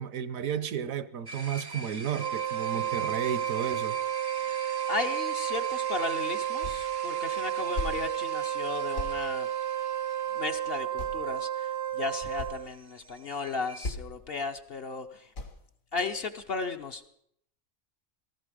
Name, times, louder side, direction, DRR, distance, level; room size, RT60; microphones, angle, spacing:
voice 1, 0.0-4.0, right 8 dB, 70° right, 1.2 m, -33 dB
sound 1, 1.3-13.9, right 2 dB, 35° right, 0.4 m, -45 dB
Wind instrument woodwind instrument, 2.1-12.7, right 11 dB, 50° right, 0.8 m, -32 dB
voice 2, 4.9-9.5 10.3-15.3 15.9-17.1, left 4 dB, 50° left, 0.9 m, -35 dB
sound 2, 6.6-6.9 7.2-8.0 8.4-8.6 8.9-9.2 10.4-10.5 11.0-11.4 11.9-12.0 12.2-12.6 13.3-13.5 13.8-14.2 14.6-14.8 15.4-15.7, left 2 dB, 65° left, 1.9 m, -37 dB
17.0 x 14.5 x 5.1 m
omnidirectional pair, 1.5 m